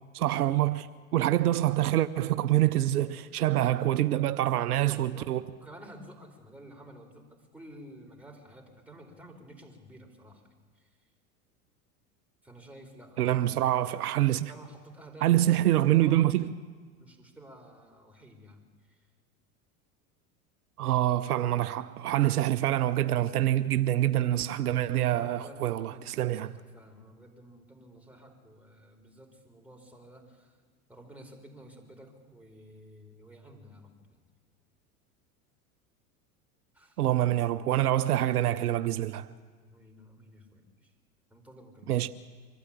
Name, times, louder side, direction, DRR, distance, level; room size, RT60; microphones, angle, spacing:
voice 1, 0.1-0.8 1.1-5.4 13.2-14.5 15.2-16.5 20.8-26.6 37.0-39.3 41.9-42.1, right 14 dB, 85° right, 0.8 m, -26 dB
voice 2, 4.8-10.4 10.7-10.9 12.4-13.4 13.9-16.3 17.0-19.0 25.1-30.6 30.9-34.2 36.7-37.0 39.7-40.9 41.3-42.0, right 1 dB, 5° right, 4.7 m, -51 dB
24.5 x 13.0 x 8.9 m
hypercardioid pair, 90°, 44 cm